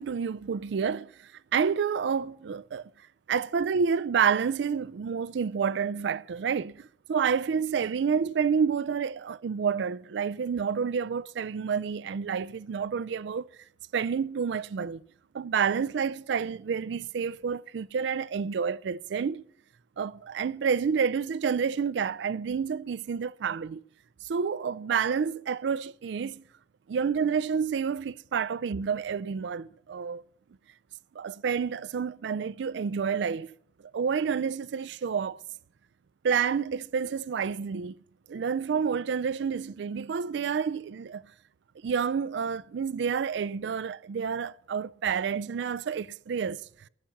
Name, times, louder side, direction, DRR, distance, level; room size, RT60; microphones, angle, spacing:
voice 1, 0.0-2.9 3.3-13.5 13.9-15.0 15.3-19.4 20.0-23.8 24.2-26.4 26.9-30.2 31.2-33.5 33.9-35.4 36.2-37.9 38.3-41.2 41.8-46.6, right 6 dB, 70° right, 0.4 m, -29 dB
12.5 x 7.2 x 7.1 m
head